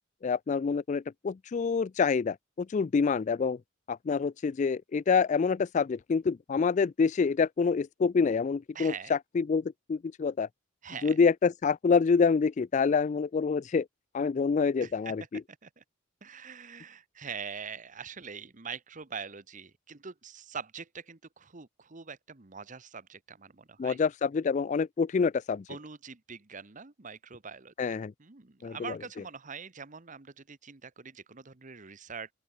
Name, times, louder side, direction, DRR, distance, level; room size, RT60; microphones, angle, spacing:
voice 1, 0.2-3.6 3.9-9.6 9.9-10.5 11.0-13.9 14.1-15.4 23.8-25.6 27.8-28.1 28.6-28.8, left 5 dB, 35° left, 0.3 m, -27 dB
voice 2, 8.7-9.1 10.8-11.2 14.8-15.1 15.5-15.8 16.2-24.0 25.7-32.3, right 6 dB, 40° right, 1.1 m, -44 dB
open air
head